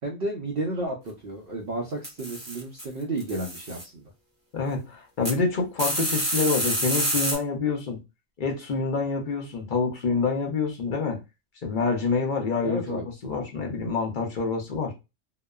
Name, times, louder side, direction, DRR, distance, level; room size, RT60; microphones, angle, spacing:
voice 1, 0.0-4.1 12.6-13.1, right 2 dB, 55° right, 0.7 m, -32 dB
sound 1, 2.0-2.8 3.2-3.8 5.2-5.3 5.8-7.4, right 1 dB, 10° right, 0.8 m, -28 dB
voice 2, 4.5-8.0 8.4-11.2 11.6-14.9, left 4 dB, 45° left, 0.8 m, -27 dB
2.9 x 2.0 x 2.3 m
omnidirectional pair, 1.3 m